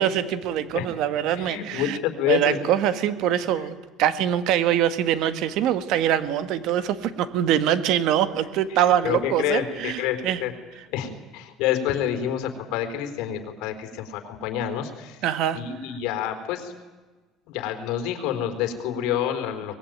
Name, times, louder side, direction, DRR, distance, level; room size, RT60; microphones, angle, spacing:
voice 1, 0.0-2.0 2.3-10.4 15.2-15.6, right 10 dB, 60° right, 12 dB, 1.6 m, -23 dB
voice 2, 1.3-2.6 8.7-10.5 10.9-15.2 15.5-16.7 17.5-19.8, left 10 dB, 70° left, 6 dB, 4.2 m, -28 dB
23.5 x 20.0 x 9.4 m, 1.3 s
cardioid pair, 160°, 0 cm